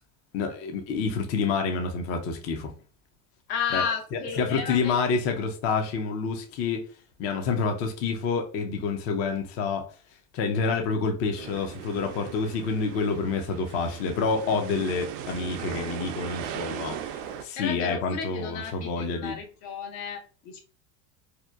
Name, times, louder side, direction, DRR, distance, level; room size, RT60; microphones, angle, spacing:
voice 1, 0.3-2.7 3.7-3.8 4.1-6.8 7.2-9.9 10.3-19.3, left 4 dB, 30° left, 0.4 m, -28 dB
voice 2, 3.5-5.0 17.6-20.6, left 6 dB, 70° left, 0.8 m, -33 dB
sound 1, 11.4-17.4, right 9 dB, 55° right, 0.5 m, -38 dB
2.8 x 2.1 x 2.2 m
hypercardioid pair, 90°, 49 cm